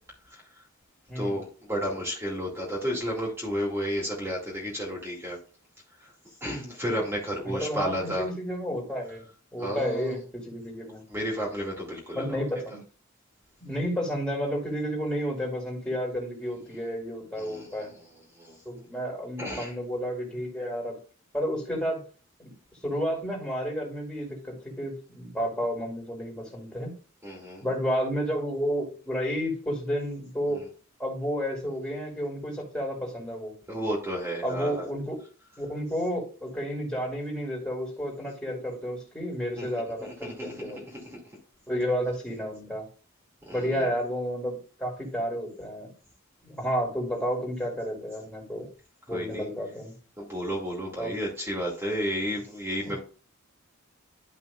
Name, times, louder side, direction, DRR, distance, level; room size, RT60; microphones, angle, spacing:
voice 1, 1.1-5.4 6.4-8.3 9.6-10.1 11.1-12.4 17.4-18.0 18.4-18.6 19.4-19.7 27.2-27.6 30.5-30.6 33.7-34.9 39.6-40.5 43.5-43.9 49.1-49.5 50.2-53.0, equal, 10° right, -4 dB, 2.3 m, -32 dB
voice 2, 7.4-9.2 9.5-11.0 12.1-12.8 13.6-17.9 18.6-21.0 21.3-22.0 22.4-22.5 22.8-26.9 27.6-30.6 31.0-33.5 34.4-35.2 35.6-40.8 41.7-42.8 43.5-45.9 46.4-48.7 49.1-49.9 51.0-51.1 52.8-52.9, equal, 10° left, -3 dB, 2.7 m, -31 dB
11.5 x 5.6 x 2.4 m, 0.38 s
head